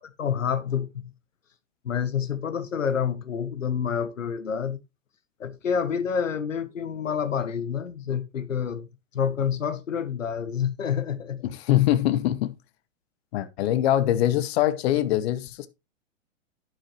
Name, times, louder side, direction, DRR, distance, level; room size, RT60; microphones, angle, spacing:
voice 1, 0.2-1.1 1.8-4.8 5.4-8.9 9.1-11.5, left 7 dB, 85° left, 1.2 m, -28 dB
voice 2, 11.4-12.5 13.3-15.7, left 13 dB, 55° left, 1.1 m, -23 dB
11.5 x 6.2 x 3.1 m
hypercardioid pair, 115°, 38 cm